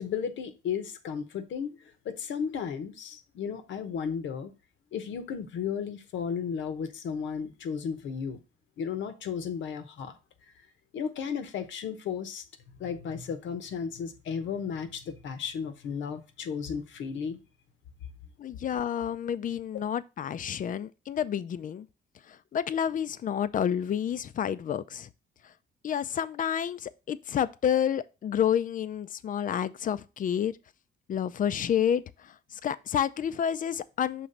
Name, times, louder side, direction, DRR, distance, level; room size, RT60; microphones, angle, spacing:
voice 1, 0.0-1.8 2.0-4.5 4.9-8.4 8.8-10.1 10.9-12.4 12.8-17.4, left 7 dB, 70° left, 0.9 m, -34 dB
voice 2, 18.4-21.9 22.5-25.1 25.8-30.5 31.1-32.0 32.6-34.3, left 9 dB, 40° left, 0.4 m, -29 dB
5.8 x 3.1 x 5.2 m
cardioid pair, 90°, 20 cm